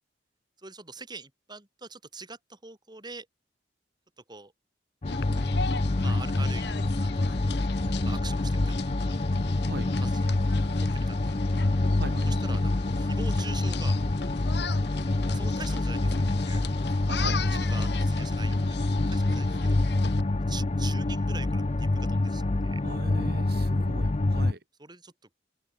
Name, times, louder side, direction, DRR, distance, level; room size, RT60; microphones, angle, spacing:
voice 1, 0.6-3.3 4.2-4.5 6.0-7.1 7.4-7.5 8.0-8.9 10.0-10.4 10.8-11.2 12.3-14.0 15.3-16.6 17.5-19.9 20.5-22.8 24.8-25.3, right 4 dB, 25° right, 3.6 m, -44 dB
sound 1, 5.0-24.5, left 2 dB, 35° left, 0.7 m, -26 dB
sound 2, 5.1-20.2, left 4 dB, 65° left, 2.5 m, -38 dB
voice 2, 12.0-12.3 17.0-17.5 22.8-24.6, right 1 dB, 60° right, 4.4 m, -38 dB
head